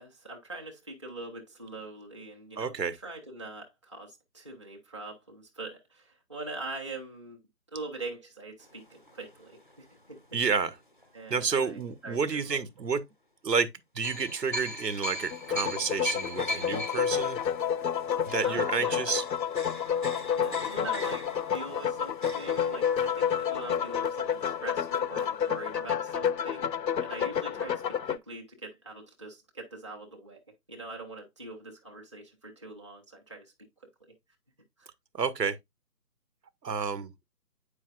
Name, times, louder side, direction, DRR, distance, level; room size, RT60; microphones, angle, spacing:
voice 1, 0.0-2.7 3.0-7.4 7.7-10.2 11.1-12.6 18.4-19.0 20.3-26.7 27.0-30.4 30.7-33.5 34.8-34.9, right 2 dB, 20° right, 0.7 m, -43 dB
voice 2, 2.6-3.0 10.3-10.7 11.3-13.0 13.4-13.7 13.9-17.4 18.2-19.2 35.1-35.6 36.6-37.1, right 5 dB, 80° right, 1.0 m, -30 dB
sound 1, 8.6-11.1 11.7-11.8 14.0-24.8 25.1-25.2 25.4-25.6, left 1 dB, 35° left, 0.5 m, -41 dB
sound 2, 15.3-28.2, left 8 dB, 85° left, 0.6 m, -30 dB
8.5 x 4.9 x 2.3 m
figure-of-eight pair, 155°, 49 cm